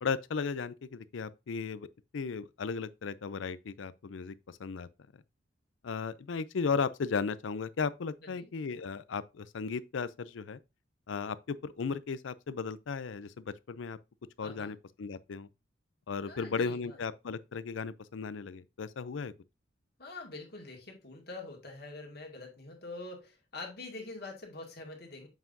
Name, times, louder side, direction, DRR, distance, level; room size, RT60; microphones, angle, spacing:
voice 1, 0.0-1.9 2.1-4.9 5.8-10.6 11.1-14.0 14.4-15.5 16.1-19.3, left 5 dB, 80° left, 0.5 m, -35 dB
voice 2, 14.4-14.7 16.3-17.0 20.0-25.3, left 2 dB, 55° left, 2.0 m, -45 dB
7.1 x 5.7 x 2.6 m
head